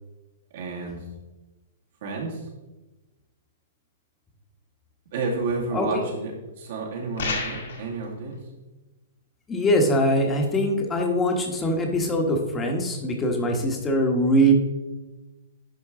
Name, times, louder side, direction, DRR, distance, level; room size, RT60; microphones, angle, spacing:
voice 1, 0.5-1.0 2.0-2.4 5.1-6.3 6.6-8.4, right 3 dB, 60° right, -2 dB, 2.3 m, -30 dB
voice 2, 5.7-6.0 9.5-14.5, equal, 15° left, 2 dB, 1.3 m, -22 dB
sound 1, 7.2-7.9, left 4 dB, 75° left, 2.2 m, -29 dB
11.0 x 4.4 x 3.8 m, 1.1 s
hypercardioid pair, 150°, 0 cm